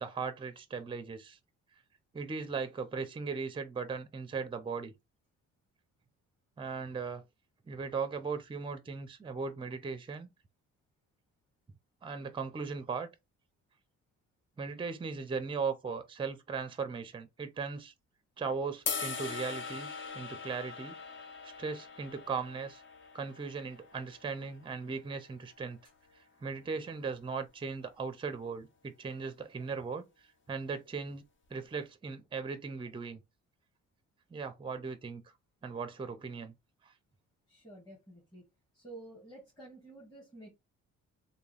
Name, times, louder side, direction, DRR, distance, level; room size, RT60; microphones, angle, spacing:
voice 1, 0.0-1.4 2.1-4.9 6.6-7.2 7.7-10.3 12.0-13.1 14.6-17.9 18.4-19.9 20.1-21.0 21.4-22.8 23.1-25.8 26.1-30.1 30.5-31.2 31.5-33.2 34.3-35.2 35.6-36.5 36.8-36.9, right 5 dB, 15° right, 0.5 m, -38 dB
sound 1, 18.9-25.1, left 5 dB, 40° left, 0.7 m, -41 dB
voice 2, 37.5-38.4 38.7-40.5, right 2 dB, 10° left, 1.6 m, -51 dB
3.4 x 2.3 x 3.3 m
cardioid pair, 90°, 30 cm